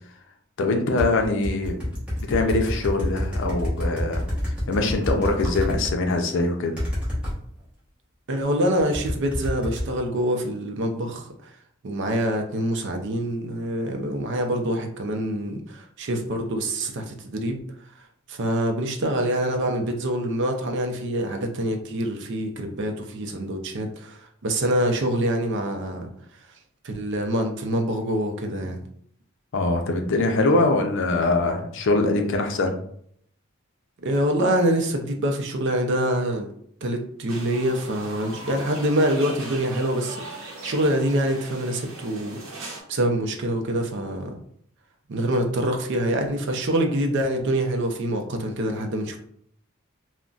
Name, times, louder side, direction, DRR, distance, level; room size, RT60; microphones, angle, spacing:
voice 1, 0.6-1.8 2.3-4.2 4.7-6.7 29.5-32.8, left 2 dB, 65° left, 4 dB, 0.5 m, -23 dB
sound 1, 1.0-5.9 6.8-7.3 8.8-9.9, left 1 dB, 5° right, 1.0 m, -27 dB
voice 2, 8.3-11.3 11.8-17.6 18.3-26.1 26.8-28.8 34.0-36.5 36.8-42.4 42.9-44.4 45.1-49.2, right 1 dB, 60° right, 4 dB, 0.5 m, -25 dB
sound 2, 37.3-42.8, right 1 dB, 85° right, 0.8 m, -38 dB
3.8 x 2.1 x 2.4 m, 0.66 s
head